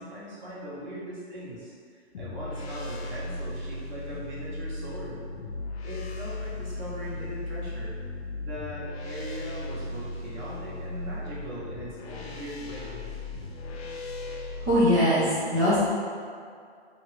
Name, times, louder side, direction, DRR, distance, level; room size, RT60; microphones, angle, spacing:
voice 1, 0.0-5.2 5.8-7.9 8.4-13.1, equal, 45° right, -7 dB, 1.0 m, -40 dB
sound 1, 2.1-15.0, left 2 dB, 65° left, 0.5 m, -37 dB
voice 2, 14.7-15.8, equal, 10° right, -15 dB, 0.3 m, -21 dB
2.5 x 2.3 x 3.2 m, 2.2 s
hypercardioid pair, 130°, 33 cm